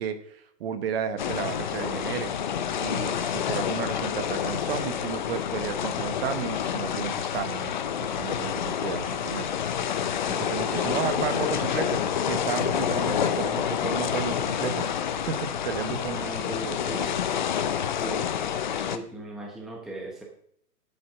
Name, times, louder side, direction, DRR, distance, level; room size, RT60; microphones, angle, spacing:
voice 1, 0.0-2.3 2.8-9.5 10.3-14.9 15.3-16.2, right 8 dB, 35° right, 9 dB, 1.3 m, -33 dB
sound 1, 1.2-19.0, left 8 dB, 30° left, 0.6 m, -28 dB
voice 2, 10.6-11.1 16.1-17.1 17.9-18.3 18.8-20.2, right 1 dB, ahead, -1 dB, 0.9 m, -38 dB
10.5 x 8.2 x 5.7 m, 0.69 s
hypercardioid pair, 150°, 49 cm